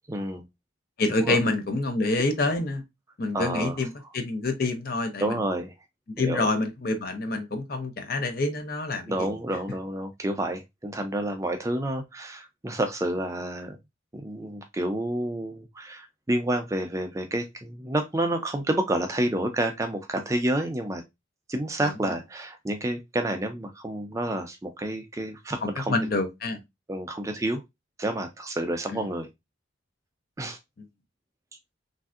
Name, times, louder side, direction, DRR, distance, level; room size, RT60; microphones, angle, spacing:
voice 1, 0.1-0.4 1.2-1.4 3.3-3.8 5.2-5.7 6.2-6.5 9.1-13.8 14.1-21.0 21.5-26.0 26.9-27.6 28.0-29.3 30.4-30.6, right 1 dB, 15° right, 0.4 m, -29 dB
voice 2, 1.0-2.8 3.2-3.9 4.1-5.4 6.2-9.3 21.8-21.9 25.6-26.6 28.9-29.1, left 2 dB, 50° left, 0.6 m, -27 dB
3.2 x 2.6 x 2.4 m
head